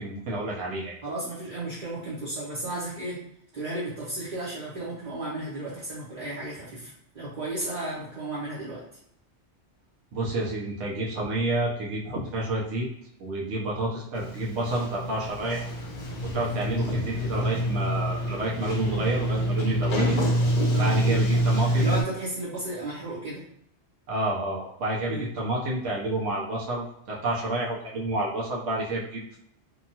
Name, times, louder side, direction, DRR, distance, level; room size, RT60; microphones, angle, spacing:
voice 1, 0.0-1.0 10.1-12.9 13.2-15.7 16.2-20.2 20.8-21.9 24.1-29.4, right 1 dB, 85° right, -4 dB, 1.0 m, -29 dB
voice 2, 1.0-3.2 3.5-8.8 20.7-21.0 21.8-23.5 25.1-25.3, right 2 dB, 45° right, -8 dB, 0.8 m, -34 dB
Sliding door, 14.1-22.0, right 1 dB, 50° left, 0.6 m, -26 dB
2.8 x 2.3 x 2.7 m, 0.74 s
omnidirectional pair, 1.2 m